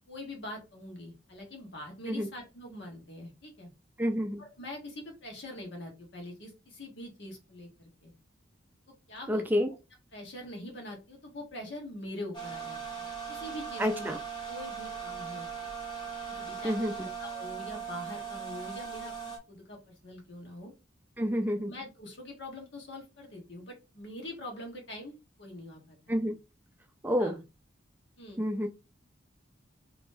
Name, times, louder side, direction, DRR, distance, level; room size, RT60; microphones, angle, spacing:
voice 1, 0.1-3.7 4.4-8.1 8.9-9.4 10.1-14.1 14.5-15.5 16.3-20.7 21.6-26.3 27.2-27.4 28.2-28.4, left 1 dB, 60° left, 1 dB, 1.3 m, -44 dB
voice 2, 4.0-4.4 9.3-9.7 13.8-14.2 16.6-17.1 21.2-21.7 26.1-26.3 27.0-27.4 28.4-28.7, equal, 10° right, 4 dB, 0.4 m, -29 dB
sound 1, 12.3-19.4, right 6 dB, 25° left, 1.1 m, -39 dB
3.7 x 3.0 x 2.6 m, 0.27 s
head